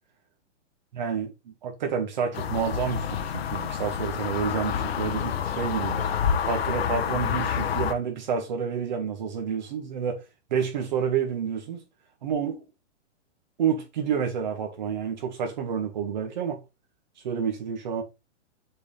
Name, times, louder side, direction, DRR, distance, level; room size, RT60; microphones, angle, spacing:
voice 1, 0.9-10.2 10.5-11.8 12.2-12.6 13.6-16.6 17.2-18.0, right 7 dB, 40° right, 2.0 m, -29 dB
sound 1, 2.3-7.9, left 8 dB, 55° left, 1.0 m, -28 dB
6.8 x 4.6 x 3.5 m
hypercardioid pair, 180°, 36 cm